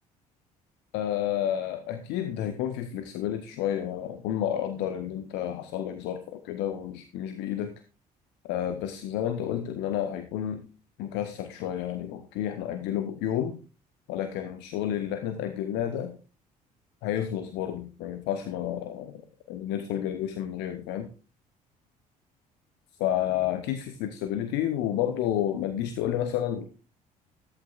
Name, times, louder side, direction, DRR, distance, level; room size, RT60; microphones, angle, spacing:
voice 1, 0.9-7.7 8.4-10.7 11.0-13.6 14.1-16.1 17.0-19.2 19.5-21.1 23.0-26.6, left 10 dB, 65° left, 9 dB, 1.0 m, -30 dB
14.0 x 12.5 x 2.4 m, 0.35 s
figure-of-eight pair, 50°, 20 cm